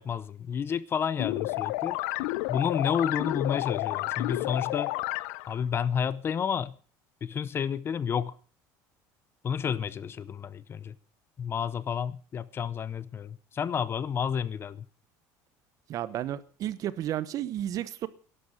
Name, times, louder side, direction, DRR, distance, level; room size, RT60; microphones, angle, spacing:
voice 1, 0.0-2.0 2.5-4.9 5.5-6.8 7.2-8.3 9.4-10.9 11.4-14.8, left 7 dB, 30° left, 0.7 m, -30 dB
sound 1, 1.2-5.6, left 19 dB, 90° left, 0.7 m, -31 dB
voice 2, 15.9-18.1, right 12 dB, 45° right, 1.1 m, -32 dB
12.0 x 11.5 x 7.5 m
cardioid pair, 140°, 8 cm